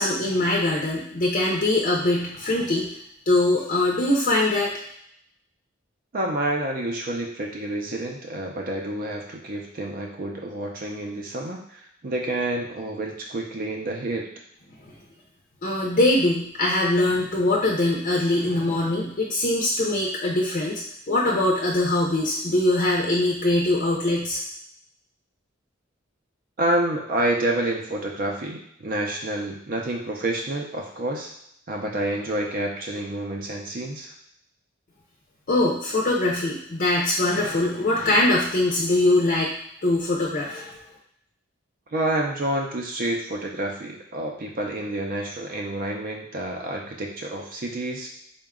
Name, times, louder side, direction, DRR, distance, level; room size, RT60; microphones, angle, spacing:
voice 1, 0.0-3.0 3.3-4.8 15.6-24.4 35.5-39.5 39.8-40.8, left 2 dB, 45° left, -3 dB, 0.6 m, -22 dB
voice 2, 6.1-14.3 26.6-31.3 31.7-34.1 41.9-48.1, right 1 dB, 45° right, 0 dB, 0.5 m, -28 dB
3.9 x 2.2 x 3.6 m, 0.71 s
head